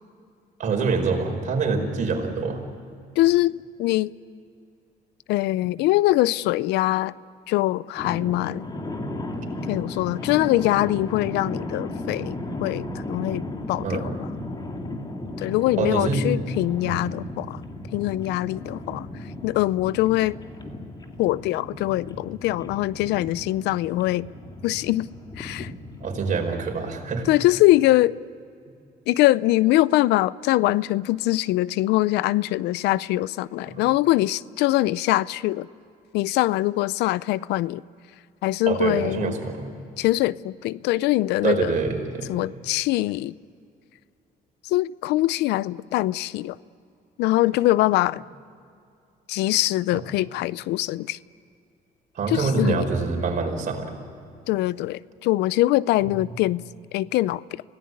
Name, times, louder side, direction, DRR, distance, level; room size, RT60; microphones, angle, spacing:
voice 1, 0.6-2.6 13.8-14.1 15.8-16.2 16.8-17.0 26.0-27.3 33.7-33.8 38.7-40.0 41.4-42.3 52.1-54.0, right 4 dB, 50° right, 3 dB, 5.0 m, -25 dB
voice 2, 3.2-4.1 5.3-7.2 7.5-8.7 9.7-14.2 15.4-17.6 17.9-20.4 21.2-24.3 24.6-25.1 25.4-25.7 27.3-28.2 29.1-35.7 36.1-37.8 38.4-39.3 40.0-41.7 42.3-43.3 44.6-46.6 47.2-48.2 49.3-51.2 52.3-52.9 54.5-56.6 56.9-57.6, left 17 dB, 85° left, 20 dB, 0.5 m, -23 dB
sound 1, 8.0-27.7, left 1 dB, 25° left, 2.4 m, -35 dB
27.0 x 17.5 x 9.6 m, 2.5 s
cardioid pair, 110°, 17 cm